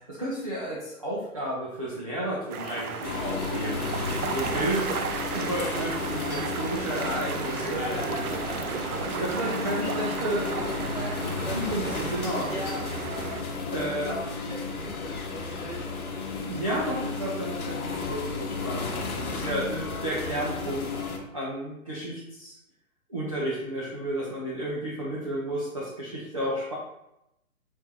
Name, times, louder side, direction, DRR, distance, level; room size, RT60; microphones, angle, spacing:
voice 1, 0.1-3.9 4.3-5.0 5.3-8.2 9.1-10.7 11.5-12.5 13.7-14.1 16.5-22.5 23.1-26.7, right 1 dB, 25° right, -7 dB, 0.3 m, -32 dB
sound 1, 2.5-13.4, right 6 dB, 85° right, 0.5 m, -34 dB
Ski resort-under the chairlift tower, 3.0-21.2, left 4 dB, 80° left, 0.9 m, -33 dB
voice 2, 7.5-8.7 8.9-9.3 9.6-10.2 10.5-12.0 12.5-12.8 14.1-15.9, left 1 dB, 15° left, -7 dB, 1.4 m, -39 dB
3.6 x 2.5 x 2.9 m, 0.85 s
hypercardioid pair, 140°, 43 cm